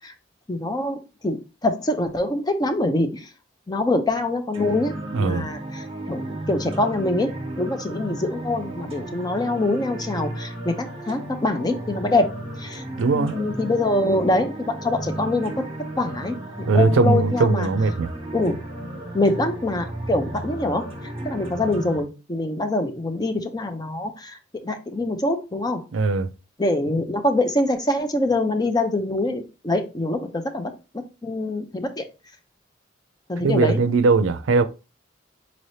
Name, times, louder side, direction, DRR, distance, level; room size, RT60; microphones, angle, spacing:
voice 1, 0.5-3.3 3.7-7.3 7.6-12.3 12.6-12.8 13.1-15.5 16.0-16.4 16.7-17.7 18.3-18.6 19.1-20.9 21.2-24.4 24.6-25.8 26.6-30.7 31.2-32.0 33.3-33.8, left 2 dB, 20° left, 0.5 m, -24 dB
sound 1, 4.5-22.0, right 1 dB, 30° right, 1.3 m, -34 dB
voice 2, 5.1-5.5 12.9-13.3 16.7-18.1 25.9-26.3 33.4-34.6, right 4 dB, 80° right, 0.4 m, -19 dB
4.1 x 3.2 x 2.7 m
head